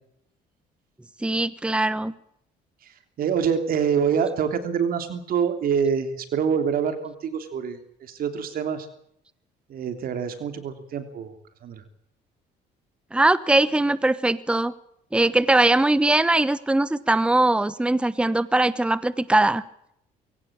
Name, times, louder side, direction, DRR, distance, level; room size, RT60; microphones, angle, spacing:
voice 1, 1.2-2.1 13.1-14.7 15.1-19.6, right 2 dB, 5° right, 16 dB, 1.1 m, -21 dB
voice 2, 2.8-8.9 9.7-11.3 11.6-11.8, right 7 dB, 60° right, 8 dB, 3.2 m, -26 dB
23.5 x 17.0 x 8.8 m, 0.74 s
cardioid pair, 110°, 17 cm